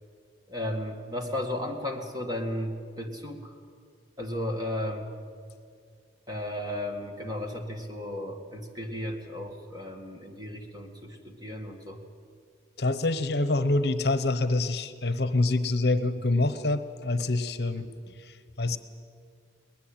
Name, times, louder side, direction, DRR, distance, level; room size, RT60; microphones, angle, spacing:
voice 1, 0.5-3.5 4.2-5.1 6.3-12.0 17.8-17.9, left 1 dB, 20° right, 4 dB, 2.0 m, -34 dB
voice 2, 12.8-17.9 18.2-18.8, left 2 dB, 60° left, 12 dB, 1.0 m, -26 dB
21.5 x 20.0 x 8.9 m, 2.2 s
head